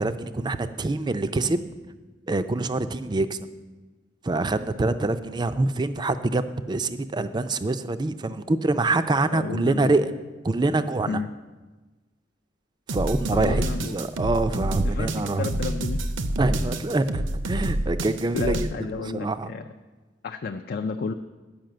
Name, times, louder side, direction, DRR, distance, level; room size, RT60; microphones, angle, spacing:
voice 1, 0.0-1.7 2.3-3.5 4.2-10.1 10.4-11.2 12.9-15.5 16.4-19.5, right 2 dB, 20° right, 11 dB, 0.4 m, -25 dB
voice 2, 9.3-10.0 11.1-11.3 13.3-13.9 14.8-16.0 18.3-19.6 20.2-21.1, left 4 dB, 50° left, 6 dB, 0.4 m, -31 dB
sound 1, 12.9-18.7, right 1 dB, 75° right, 0.7 m, -27 dB
10.5 x 5.7 x 7.7 m, 1.2 s
head